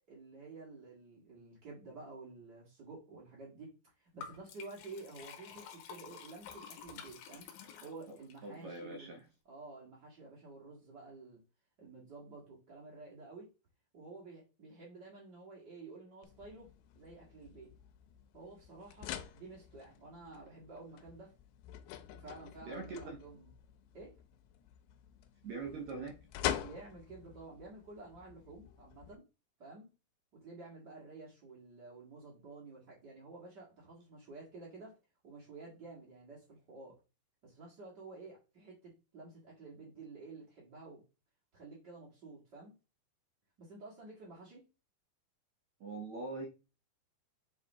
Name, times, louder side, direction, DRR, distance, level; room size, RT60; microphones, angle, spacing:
voice 1, 0.1-7.5 7.8-9.2 9.4-11.4 11.8-13.5 13.9-17.7 18.3-21.3 22.1-23.5 23.9-24.1 26.6-29.2 29.6-29.9 30.3-34.9 35.2-36.9 37.4-41.0 41.5-42.7 43.6-44.6, right 3 dB, 40° right, -4 dB, 1.5 m, -51 dB
Liquid, 4.2-8.4, left 7 dB, 75° left, 2.4 m, -50 dB
voice 2, 8.4-9.2 22.6-23.2 25.4-26.2 45.8-46.5, right 3 dB, 70° right, 2 dB, 1.7 m, -42 dB
sound 1, 16.2-29.2, left 11 dB, 90° left, 2.8 m, -45 dB
7.5 x 4.1 x 3.5 m, 0.29 s
omnidirectional pair, 4.7 m